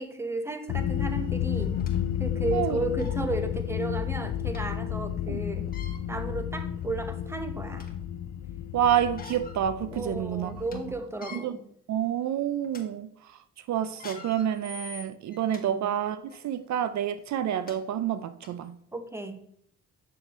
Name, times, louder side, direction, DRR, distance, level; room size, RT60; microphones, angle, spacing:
voice 1, 0.0-1.8 2.2-5.7 6.1-7.9 9.9-11.6 15.5-15.9 18.9-19.4, right 2 dB, 10° right, 1.0 m, -34 dB
sound 1, 0.7-11.0, left 10 dB, 75° left, 0.5 m, -32 dB
sound 2, 0.8-0.9 1.5-2.0 2.6-2.7 3.0-3.2 4.5-4.6 5.6-6.0 6.8-6.9 7.3-8.0 9.0-9.6 10.0-10.1 10.5-10.8 11.1-11.4 12.0-12.2 12.6-12.8 13.8-15.6 16.2-16.4 17.3-17.4 17.7-17.8 18.4-18.5, left 5 dB, 30° left, 1.4 m, -45 dB
voice 2, 8.7-10.8 11.3-11.6 11.9-13.1 13.7-16.2 16.4-18.7, right 10 dB, 65° right, 0.5 m, -28 dB
7.7 x 6.6 x 3.0 m
cardioid pair, 90°, 30 cm